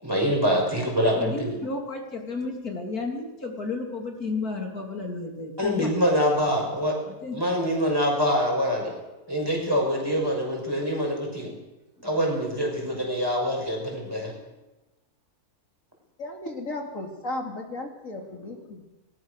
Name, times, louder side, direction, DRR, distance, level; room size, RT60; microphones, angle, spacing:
voice 1, 0.0-1.6 5.6-7.0 7.3-8.9 9.3-11.5 12.0-14.3, equal, 15° right, -1 dB, 6.0 m, -25 dB
voice 2, 0.7-5.9 7.1-7.4, left 3 dB, 80° left, 1 dB, 3.7 m, -32 dB
voice 3, 16.2-18.8, left 2 dB, 60° left, 1 dB, 3.2 m, -35 dB
20.5 x 20.0 x 6.6 m, 1.1 s
omnidirectional pair, 1.6 m